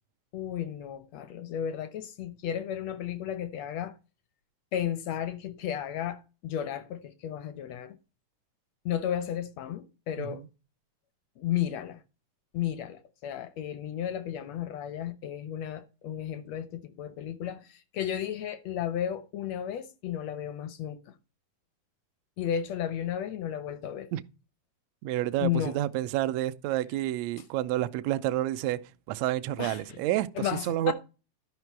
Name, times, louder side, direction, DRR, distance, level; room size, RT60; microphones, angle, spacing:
voice 1, 0.3-4.0 4.7-8.0 8.8-10.4 11.4-12.0 12.5-21.1 22.4-24.1 25.4-25.8 29.6-30.0 30.3-30.9, left 10 dB, 75° left, 1.6 m, -33 dB
voice 2, 25.0-28.8 29.1-30.9, right 14 dB, 80° right, 1.5 m, -29 dB
11.5 x 5.9 x 4.6 m
omnidirectional pair, 3.8 m